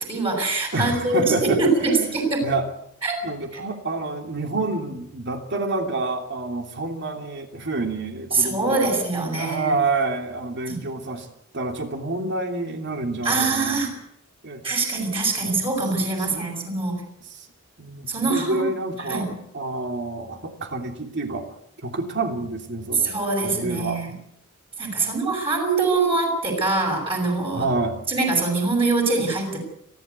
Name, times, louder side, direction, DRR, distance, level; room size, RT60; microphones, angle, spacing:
voice 1, 0.1-2.5 3.0-3.2 8.3-9.7 10.7-10.8 13.2-13.9 14.6-17.1 18.1-18.6 19.1-19.4 23.0-24.1 24.8-27.6 28.1-29.6, right 3 dB, 25° right, 1 dB, 6.4 m, -23 dB
voice 2, 0.7-2.7 3.2-9.0 9.4-11.3 11.5-13.9 14.4-14.6 15.4-15.6 15.9-16.5 17.8-21.5 21.8-23.1 23.4-24.1 25.0-25.3 27.5-28.0, right 2 dB, 55° right, 4 dB, 3.1 m, -28 dB
30.0 x 11.5 x 8.3 m, 0.76 s
head